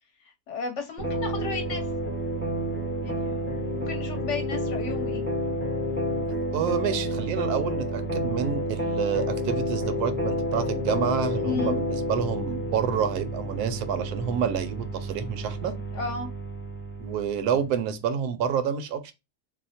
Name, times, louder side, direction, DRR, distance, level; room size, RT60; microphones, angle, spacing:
voice 1, 0.2-1.8 2.9-5.2 11.4-11.8 15.9-16.3, left 5 dB, 60° left, 0.9 m, -34 dB
sound 1, 1.0-17.7, equal, 10° left, 0.6 m, -30 dB
voice 2, 6.5-15.7 17.0-19.1, right 8 dB, 85° right, 1.1 m, -28 dB
2.8 x 2.0 x 4.0 m
omnidirectional pair, 1.6 m